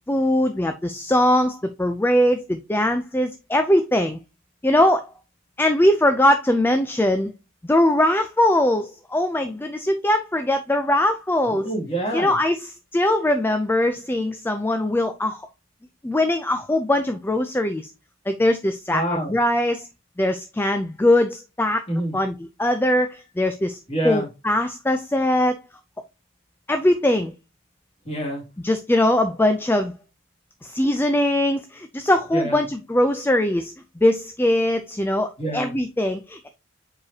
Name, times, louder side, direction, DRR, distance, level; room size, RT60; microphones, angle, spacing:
voice 1, 0.1-4.2 4.6-5.1 5.6-7.3 7.6-11.7 12.1-12.6 12.9-15.4 16.0-17.9 18.3-19.9 20.2-21.8 22.1-22.3 22.6-23.8 24.0-25.5 26.7-27.3 28.6-29.9 30.6-36.5, left 1 dB, 10° left, 0.4 m, -21 dB
voice 2, 11.5-12.3 18.9-19.3 21.9-22.1 23.9-24.3 28.0-28.4 32.3-32.6 35.4-35.7, right 1 dB, 30° left, 2.5 m, -27 dB
7.2 x 4.8 x 2.8 m
head